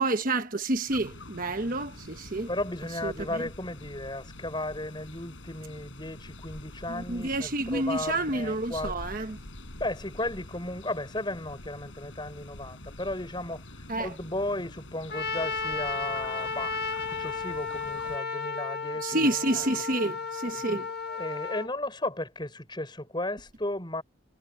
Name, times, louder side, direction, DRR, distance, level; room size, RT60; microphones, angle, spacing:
voice 1, 0.0-2.5 3.0-3.1 6.9-9.4 13.9-14.1 19.0-20.9, right 2 dB, 45° right, 1.2 m, -29 dB
sound 1, 0.9-18.2, left 1 dB, 80° left, 4.1 m, -46 dB
voice 2, 2.5-8.9 9.8-13.6 14.0-16.8 17.1-19.7 20.6-20.8 21.1-24.0, left 1 dB, 25° left, 6.1 m, -35 dB
Trumpet, 15.1-21.7, left 4 dB, 55° left, 1.7 m, -33 dB
head